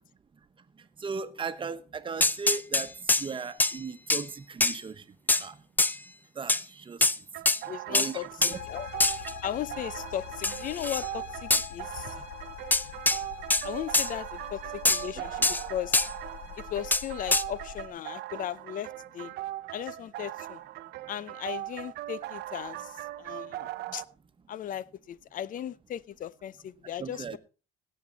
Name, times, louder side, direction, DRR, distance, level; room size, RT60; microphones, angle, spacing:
voice 1, 1.0-2.9 3.2-5.0 5.4-5.6 6.4-7.0 7.9-8.6 15.4-15.5 27.0-27.4, right 5 dB, 30° right, 1.2 m, -37 dB
sound 1, 2.2-3.3 3.6-3.8 4.1-4.2 4.6-4.8 5.3-5.4 5.8-6.0 6.5-6.6 7.0-7.2 7.5-7.6 7.9-8.1 8.4-8.5 9.0-9.3 10.4-11.1 11.5-11.7 12.7-13.2 13.5-13.7 13.9-14.1 14.9-15.0 15.4-15.6 15.9-16.1 16.9-17.0 17.3-17.4, left 2 dB, 10° left, 0.5 m, -24 dB
sound 2, 7.3-24.0, right 15 dB, 75° right, 0.7 m, -40 dB
voice 2, 7.7-8.9 9.4-12.2 13.6-16.0 16.7-19.3 19.7-20.6 21.1-24.0 24.5-27.4, left 10 dB, 55° left, 0.6 m, -37 dB
sound 3, 8.5-17.9, left 9 dB, 80° left, 1.4 m, -43 dB
17.0 x 8.5 x 4.1 m
cardioid pair, 110°, 17 cm